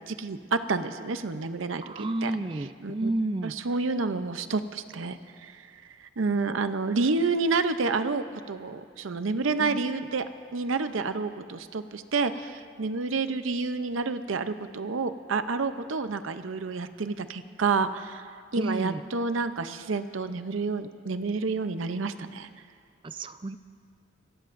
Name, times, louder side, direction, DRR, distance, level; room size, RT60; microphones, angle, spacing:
voice 1, 0.1-2.3 2.8-3.1 3.4-10.3 10.5-22.5, right 4 dB, 85° right, 10 dB, 0.6 m, -29 dB
voice 2, 1.8-3.6 9.6-9.8 18.6-19.0 23.0-23.6, right 2 dB, 25° right, 12 dB, 0.4 m, -31 dB
27.5 x 18.0 x 2.6 m, 2.2 s
head